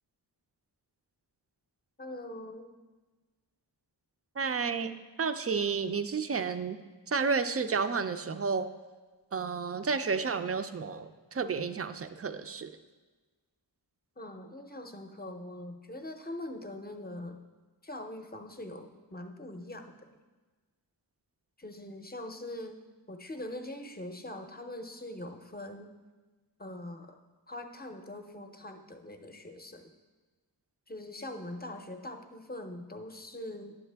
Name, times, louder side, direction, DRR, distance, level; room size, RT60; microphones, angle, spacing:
voice 1, 2.0-2.7 14.2-17.4 17.8-20.1 21.6-22.8 23.1-25.9 26.6-27.2 27.5-29.9 30.9-33.8, left 1 dB, 20° left, 5 dB, 0.6 m, -42 dB
voice 2, 4.4-6.8 7.1-8.7 9.3-12.7, right 5 dB, 35° right, 10 dB, 0.4 m, -31 dB
9.5 x 7.3 x 3.4 m, 1.3 s
wide cardioid pair, 100°, 42 cm